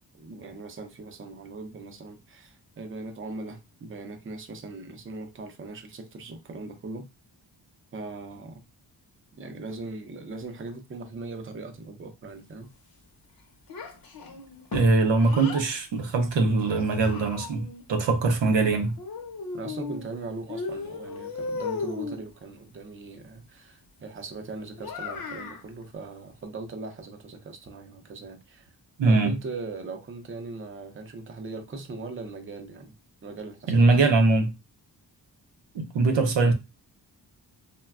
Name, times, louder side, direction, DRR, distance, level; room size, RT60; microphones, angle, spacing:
voice 1, 0.1-7.1 7.9-8.6 9.4-12.7 19.5-28.7 29.0-32.9 33.2-34.1, right 3 dB, 30° right, 0.6 m, -39 dB
Child speech kid speaking, 13.7-15.7 16.6-17.8 19.0-20.1 20.5-22.2 24.8-25.6, left 4 dB, 55° left, 0.7 m, -36 dB
voice 2, 14.7-18.9 29.0-29.3 33.7-34.5 35.7-36.5, right 3 dB, 85° right, 0.7 m, -22 dB
3.3 x 2.1 x 2.3 m
cardioid pair, 75°, 43 cm